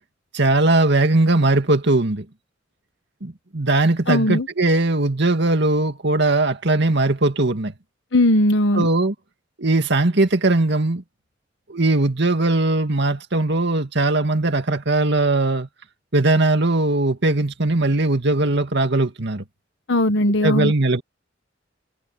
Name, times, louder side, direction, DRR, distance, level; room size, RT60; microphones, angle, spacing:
voice 1, 0.3-2.3 3.2-7.7 8.7-9.1 9.6-11.0 11.7-15.7 16.1-19.4 20.4-21.0, right 2 dB, 65° right, 2.2 m, -19 dB
voice 2, 4.1-4.5 8.1-8.9 19.9-20.7, left 1 dB, 65° left, 1.3 m, -18 dB
head